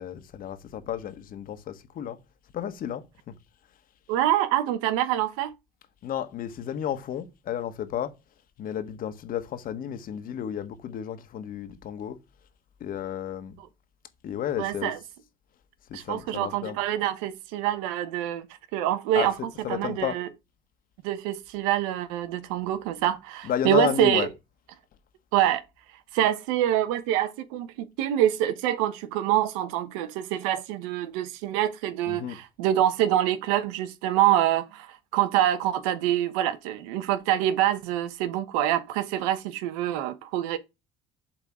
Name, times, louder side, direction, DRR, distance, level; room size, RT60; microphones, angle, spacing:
voice 1, 0.0-2.2 2.5-3.3 6.0-8.1 8.6-12.2 12.8-13.6 14.2-14.9 15.9-16.8 19.1-20.2 23.4-24.3 32.1-32.4, left 10 dB, 60° left, 1.5 m, -32 dB
voice 2, 4.1-5.5 13.6-13.7 14.6-15.0 15.9-18.5 18.7-20.3 21.0-24.3 25.3-25.6 26.1-40.6, right 12 dB, 90° right, 1.0 m, -26 dB
7.3 x 4.0 x 4.9 m
supercardioid pair, 85°, 17 cm